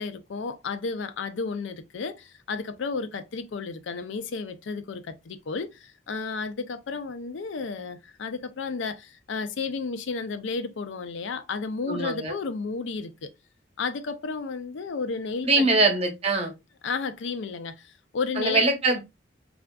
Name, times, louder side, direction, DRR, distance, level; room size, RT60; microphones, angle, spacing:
voice 1, 0.0-13.3 13.8-15.6 16.8-18.6, left 4 dB, 85° left, 0.4 m, -32 dB
voice 2, 11.9-12.3 15.4-16.5 18.4-19.0, right 2 dB, 35° right, 0.8 m, -22 dB
3.4 x 2.4 x 2.2 m
head